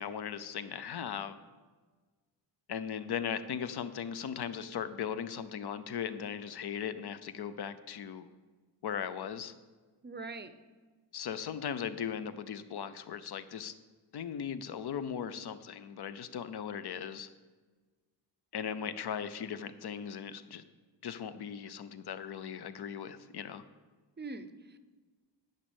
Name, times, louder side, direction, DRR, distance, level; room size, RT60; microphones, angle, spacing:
voice 1, 0.0-1.4 2.7-8.3 8.8-9.5 11.1-13.7 14.1-17.3 18.5-20.6 21.0-23.6, left 8 dB, 65° left, 12 dB, 0.7 m, -38 dB
voice 2, 10.0-10.5 24.2-24.8, right 3 dB, 25° right, 11 dB, 0.5 m, -42 dB
10.5 x 5.4 x 7.0 m, 1.3 s
wide cardioid pair, 145°, 42 cm